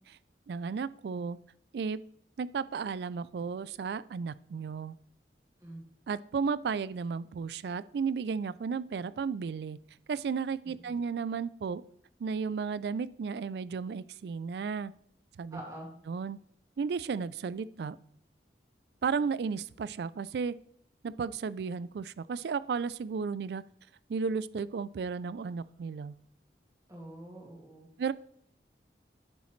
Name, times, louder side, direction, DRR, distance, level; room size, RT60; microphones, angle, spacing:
voice 1, 0.5-1.4 1.7-2.0 2.4-4.9 6.1-9.8 10.1-11.8 12.2-14.9 15.4-15.6 16.1-16.4 16.8-18.0 19.0-20.6 21.0-23.6 24.1-26.1 28.0-28.1, right 5 dB, 70° right, 18 dB, 0.3 m, -34 dB
voice 2, 15.5-15.9 26.9-27.9, right 1 dB, 20° right, -2 dB, 2.2 m, -45 dB
9.7 x 7.1 x 3.2 m, 0.67 s
head